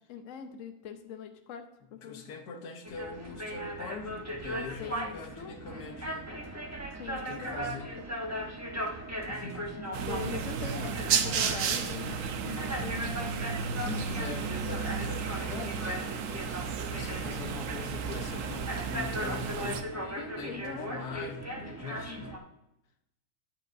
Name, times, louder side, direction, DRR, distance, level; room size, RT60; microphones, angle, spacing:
voice 1, 0.1-1.6 1.9-2.2 4.5-5.6 7.0-7.9 10.1-12.2 12.5-13.4 13.8-14.0 20.2-20.9, left 7 dB, 60° left, 6 dB, 1.1 m, -42 dB
voice 2, 2.0-6.3 7.1-7.9 9.3-10.0 13.7-16.6 16.9-22.4, left 5 dB, 80° left, 6 dB, 1.5 m, -43 dB
sound 1, 2.8-22.4, right 1 dB, 15° right, 0.8 m, -38 dB
sound 2, 9.9-19.8, right 6 dB, 60° right, 1.0 m, -33 dB
9.9 x 9.3 x 2.6 m, 0.85 s
omnidirectional pair, 1.7 m